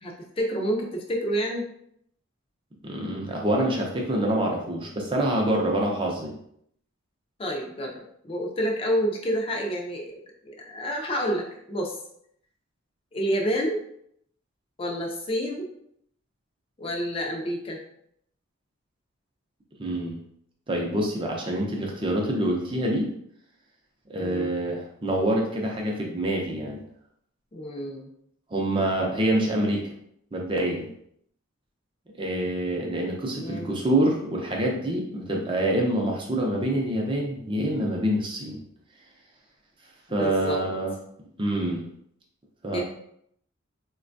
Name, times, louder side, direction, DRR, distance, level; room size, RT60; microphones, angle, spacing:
voice 1, 0.0-1.7 7.4-11.9 13.1-13.8 14.8-15.7 16.8-17.8 24.2-24.5 27.5-28.1 33.3-33.7 40.1-40.6 42.7-42.8, equal, 25° left, 1 dB, 0.4 m, -29 dB
voice 2, 2.8-6.3 19.8-20.2 20.7-23.1 24.1-26.8 28.5-29.9 30.3-30.9 32.2-38.6 40.1-40.9 41.4-41.8 42.6-42.8, right 1 dB, 25° right, 0 dB, 0.5 m, -26 dB
4.1 x 2.2 x 2.5 m, 0.71 s
head